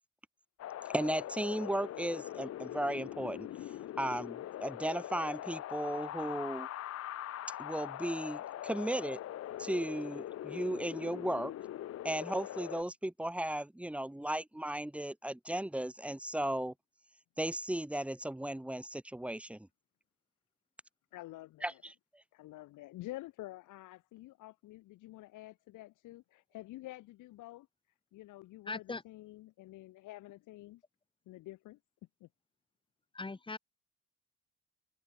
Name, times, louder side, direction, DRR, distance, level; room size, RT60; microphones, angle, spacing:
Wind, 0.6-12.8, left 12 dB, 55° left, 0.6 m, -42 dB
voice 1, 0.9-3.5 4.0-6.7 7.6-9.2 9.6-11.5 12.0-16.7 17.4-19.7 21.6-21.9, right 1 dB, 5° right, 1.2 m, -36 dB
voice 2, 21.1-21.8 22.3-27.7 28.1-30.8 31.3-31.8 32.2-32.3, left 17 dB, 85° left, 0.9 m, -49 dB
voice 3, 28.7-29.0 33.1-33.6, left 3 dB, 15° left, 1.6 m, -39 dB
open air
cardioid pair, 90°, 30 cm